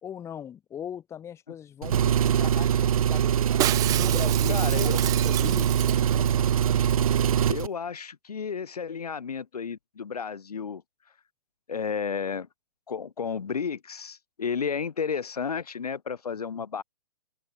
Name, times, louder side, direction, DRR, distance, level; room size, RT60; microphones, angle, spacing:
voice 1, 0.0-2.0 2.4-3.4 3.8-6.5, left 9 dB, 15° left, 1.5 m, -40 dB
Engine, 1.8-7.7, right 9 dB, 65° right, 0.6 m, -23 dB
Shatter, 3.6-6.3 6.6-6.7 6.9-7.3 7.6-7.7, right 15 dB, 20° right, 0.7 m, -31 dB
voice 2, 4.5-5.1 7.5-10.8 11.7-12.5 12.9-16.8, left 6 dB, 75° left, 1.8 m, -32 dB
open air
hypercardioid pair, 135°, 20 cm